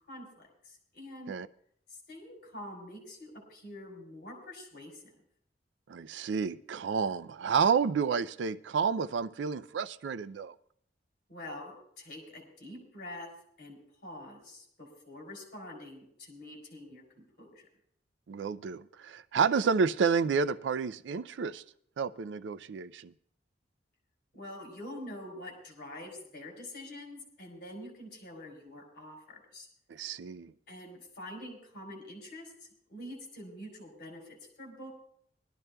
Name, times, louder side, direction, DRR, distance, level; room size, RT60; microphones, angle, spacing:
voice 1, 0.1-1.4 2.1-5.1 11.3-13.3 13.6-17.6 24.3-29.7 30.7-34.9, left 1 dB, 50° left, 3.2 m, -46 dB
voice 2, 5.9-10.5 18.3-21.6 22.0-23.1 29.9-30.5, right 5 dB, 85° right, 0.4 m, -30 dB
22.5 x 12.0 x 2.2 m
head